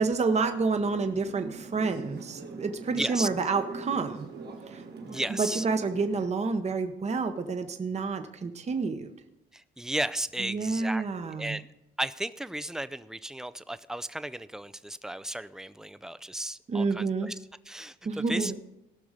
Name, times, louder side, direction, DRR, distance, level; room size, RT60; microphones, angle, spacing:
voice 1, 0.0-4.3 4.7-9.1 10.4-11.6 16.7-17.3 18.0-18.6, right 4 dB, 35° right, 8 dB, 0.9 m, -29 dB
sound 1, 0.7-6.3, right 3 dB, 55° right, 1.5 m, -43 dB
voice 2, 2.9-3.3 5.1-5.7 9.5-11.7 12.0-17.4 17.7-18.6, right 1 dB, 5° right, 15 dB, 0.4 m, -34 dB
17.5 x 6.1 x 5.0 m, 0.89 s
cardioid pair, 90°, 20 cm